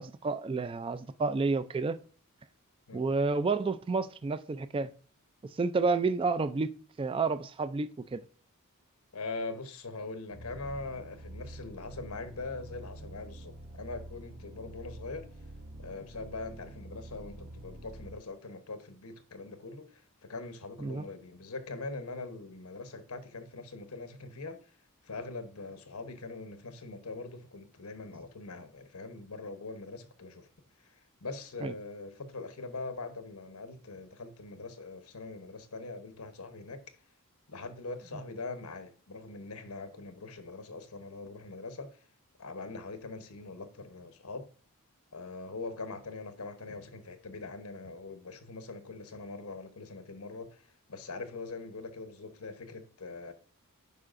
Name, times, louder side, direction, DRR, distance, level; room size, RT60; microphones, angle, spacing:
voice 1, 0.0-2.0 2.9-4.9 5.5-6.7 7.0-8.2 20.8-21.0 31.6-31.7, right 4 dB, 25° right, 0.3 m, -30 dB
voice 2, 9.1-15.3 15.8-24.7 25.0-30.5 30.8-37.0 37.5-42.0 42.4-44.5 45.1-53.3, left 3 dB, 90° left, 1.0 m, -42 dB
sound 1, 10.3-18.2, right 1 dB, 85° right, 2.9 m, -47 dB
11.0 x 4.8 x 2.5 m
head